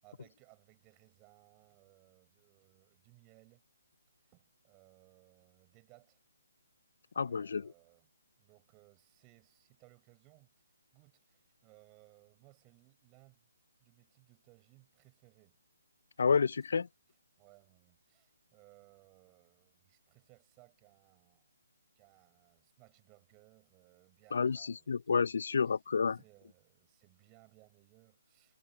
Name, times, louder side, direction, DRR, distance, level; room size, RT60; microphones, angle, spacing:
voice 1, 0.0-3.6 4.2-6.2 7.2-8.1 8.4-13.5 13.8-15.6 16.7-16.8 17.4-21.5 21.9-25.3 25.7-25.8 26.1-28.6, right 27 dB, 20° right, 8.0 m, -64 dB
voice 2, 7.2-7.7 16.2-16.9 24.3-26.2, left 5 dB, 60° left, 0.7 m, -30 dB
figure-of-eight pair, 145°, 0 cm